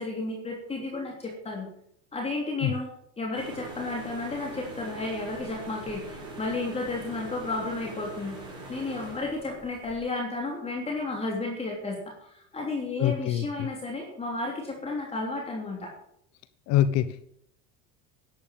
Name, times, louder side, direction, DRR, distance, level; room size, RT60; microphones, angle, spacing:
voice 1, 0.0-1.7 2.1-2.9 3.2-8.4 8.7-15.9, left 3 dB, 20° left, 0 dB, 3.2 m, -32 dB
sound 1, 3.3-10.0, right 1 dB, 15° right, 6.2 m, -42 dB
voice 2, 13.0-13.7 16.7-17.3, left 11 dB, 55° left, 14 dB, 1.0 m, -25 dB
11.5 x 9.5 x 7.5 m, 0.67 s
cardioid pair, 140°, 31 cm